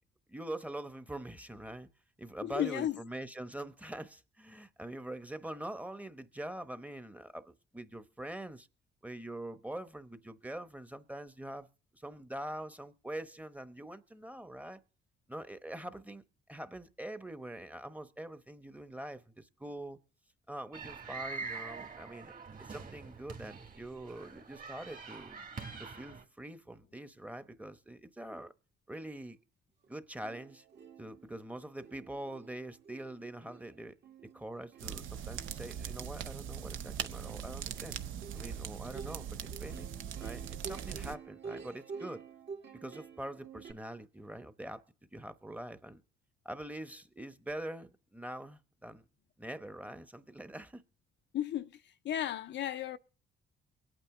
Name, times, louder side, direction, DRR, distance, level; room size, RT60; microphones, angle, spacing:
voice 1, 0.3-1.9 2.2-8.7 9.0-11.7 11.9-14.8 15.3-16.2 16.5-20.0 20.5-22.3 22.6-25.4 25.8-28.5 28.9-29.4 29.9-30.6 31.0-33.9 34.3-38.0 38.3-39.9 40.2-42.2 42.7-44.8 45.1-46.0 46.4-49.0 49.4-50.8, right 1 dB, 5° right, 0.9 m, -44 dB
voice 2, 2.4-3.0 51.3-53.0, left 11 dB, 65° left, 0.5 m, -34 dB
sound 1, 20.7-26.2, right 4 dB, 45° right, 2.1 m, -45 dB
Plucked string instrument, 29.8-29.9 30.2-43.7, right 5 dB, 60° right, 1.8 m, -50 dB
sound 2, 34.8-41.2, right 8 dB, 80° right, 0.8 m, -41 dB
23.0 x 9.0 x 3.7 m
cardioid pair, 90°, 20 cm